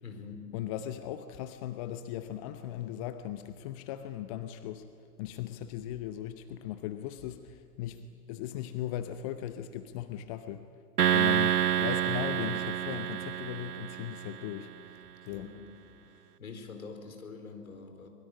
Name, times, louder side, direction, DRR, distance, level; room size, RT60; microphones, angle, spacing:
voice 1, 0.0-0.5 15.3-15.5 16.1-18.1, left 5 dB, 65° left, 5 dB, 4.7 m, -45 dB
voice 2, 0.5-4.9 5.2-10.7 11.1-15.5, left 11 dB, 25° left, 10 dB, 0.7 m, -38 dB
sound 1, 11.0-14.5, right 10 dB, 80° right, 0.6 m, -28 dB
24.0 x 21.5 x 9.7 m, 2.4 s
figure-of-eight pair, 115°, 46 cm